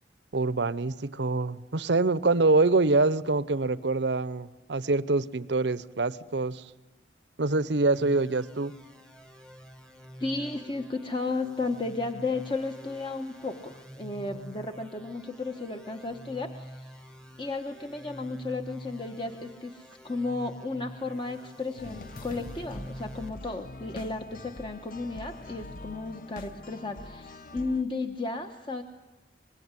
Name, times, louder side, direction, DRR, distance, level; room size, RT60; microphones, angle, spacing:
voice 1, 0.3-6.7 7.4-8.7, right 3 dB, 75° right, 0.8 m, -25 dB
sound 1, 7.9-23.3, equal, 5° left, 1.2 m, -46 dB
voice 2, 10.2-17.0 17.4-28.8, left 3 dB, 25° left, 1.1 m, -34 dB
sound 2, 21.8-27.8, left 2 dB, 50° left, 0.8 m, -44 dB
25.0 x 21.0 x 9.7 m
head